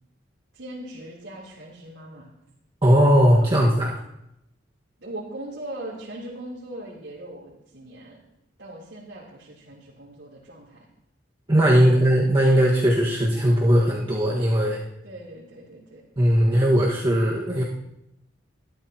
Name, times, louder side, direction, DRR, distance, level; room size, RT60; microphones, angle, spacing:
voice 1, 0.5-2.3 3.4-3.5 5.0-8.2 8.6-10.9 11.7-12.0 15.0-16.0, right 1 dB, 85° right, -6 dB, 3.6 m, -40 dB
voice 2, 2.8-4.0 11.5-14.8 16.2-17.6, equal, 30° right, -5 dB, 1.7 m, -19 dB
21.5 x 13.0 x 3.0 m, 0.83 s
head